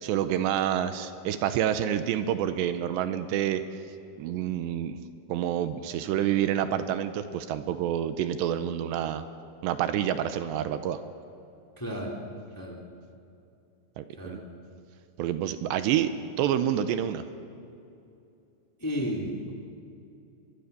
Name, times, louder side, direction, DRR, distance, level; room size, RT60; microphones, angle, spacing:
voice 1, 0.0-3.6 4.2-5.0 5.3-9.2 9.6-11.0 14.0-14.4 15.2-16.1 16.4-17.2, right 10 dB, 80° right, 10 dB, 2.9 m, -28 dB
voice 2, 11.8-12.1 12.5-12.8 14.2-14.4 18.8-19.5, equal, 5° left, -1 dB, 1.8 m, -32 dB
23.0 x 23.0 x 6.8 m, 2.6 s
omnidirectional pair, 5.1 m